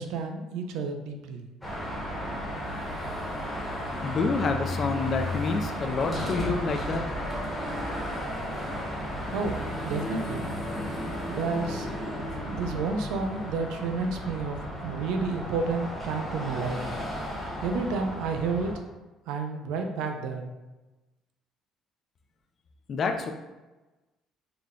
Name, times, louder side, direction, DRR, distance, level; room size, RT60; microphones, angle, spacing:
voice 1, 0.0-1.5 9.3-10.5 11.3-11.9 12.4-16.9 17.6-18.7 19.3-20.5, right 4 dB, 90° right, 4 dB, 0.4 m, -31 dB
Car passing by / Traffic noise roadway noise / Engine, 1.6-18.7, equal, 5° left, 0.9 m, -34 dB
voice 2, 4.0-7.1 22.9-23.3, left 4 dB, 35° left, 5 dB, 0.3 m, -28 dB
3.7 x 2.2 x 3.6 m, 1.1 s
cardioid pair, 150°, 0 cm